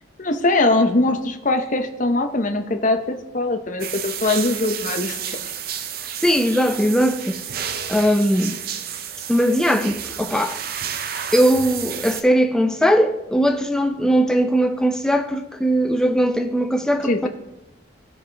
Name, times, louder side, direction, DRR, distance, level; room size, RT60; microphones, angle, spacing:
voice 1, 0.2-5.4 17.1-17.3, left 2 dB, 40° left, 0.8 m, -21 dB
sound 1, 3.8-12.2, right 8 dB, 50° right, 0.5 m, -31 dB
voice 2, 6.2-7.4 7.9-8.6 9.3-10.6 11.3-17.3, equal, 5° left, 0.6 m, -19 dB
17.0 x 5.8 x 3.4 m
head